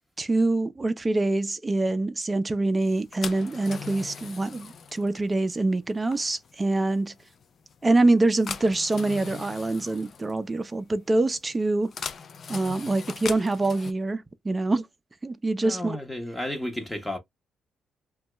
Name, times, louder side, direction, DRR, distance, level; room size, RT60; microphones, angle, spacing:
voice 1, 0.2-7.1 7.8-11.9 12.5-14.9 15.2-16.0, right 2 dB, 20° right, 0.4 m, -25 dB
sound 1, 2.8-13.9, left 6 dB, 50° left, 0.4 m, -41 dB
voice 2, 15.6-17.2, left 1 dB, 10° left, 0.7 m, -32 dB
2.7 x 2.2 x 3.0 m
cardioid pair, 90°, 0 cm